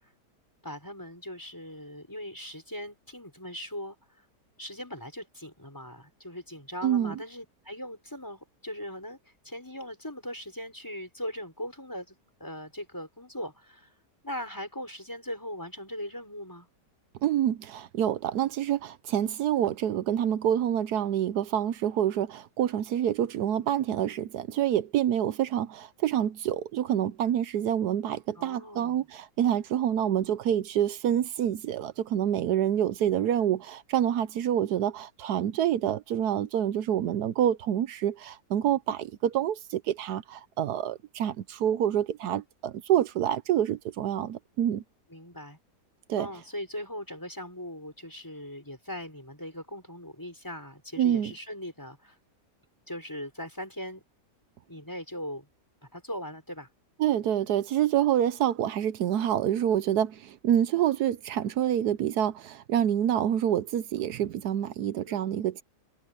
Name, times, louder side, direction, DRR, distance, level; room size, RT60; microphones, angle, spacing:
voice 1, 0.6-4.0 4.6-9.2 9.4-13.9 14.2-16.7 28.4-29.1 45.1-45.6 46.2-52.2 52.9-54.0 54.7-55.5 55.8-56.7 65.1-65.3, left 1 dB, 10° left, 6.0 m, -39 dB
voice 2, 6.8-7.2 17.2-44.8 46.1-46.3 51.0-51.3 57.0-65.6, right 10 dB, 75° right, 1.2 m, -27 dB
omnidirectional pair, 1.8 m